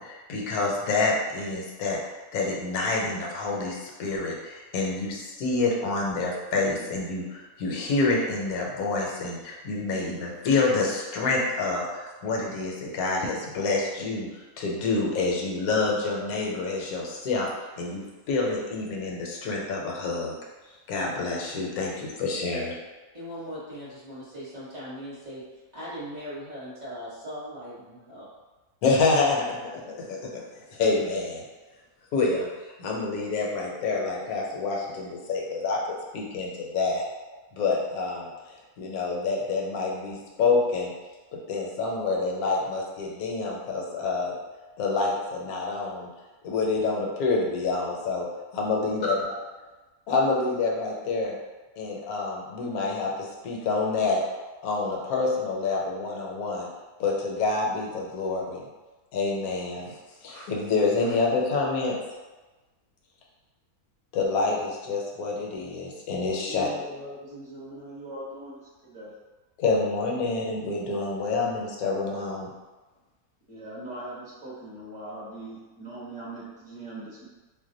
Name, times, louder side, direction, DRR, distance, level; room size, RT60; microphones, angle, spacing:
voice 1, 0.0-2.0 2.3-17.5 17.8-20.4 20.9-22.7 28.8-31.4 32.1-37.0 37.5-40.9 41.3-44.3 44.8-46.1 46.4-48.3 48.5-49.4 50.1-51.4 51.8-54.2 54.6-56.7 57.0-58.6 59.1-59.9 60.2-61.9 64.1-66.7 69.6-72.5, left 3 dB, 80° left, -1 dB, 1.1 m, -27 dB
voice 2, 23.1-25.4 25.7-28.3, equal, 35° right, -9 dB, 0.9 m, -39 dB
voice 3, 66.4-69.1 73.5-77.3, right 1 dB, 5° right, -8 dB, 0.8 m, -40 dB
2.6 x 2.1 x 3.8 m, 1.2 s
omnidirectional pair, 1.6 m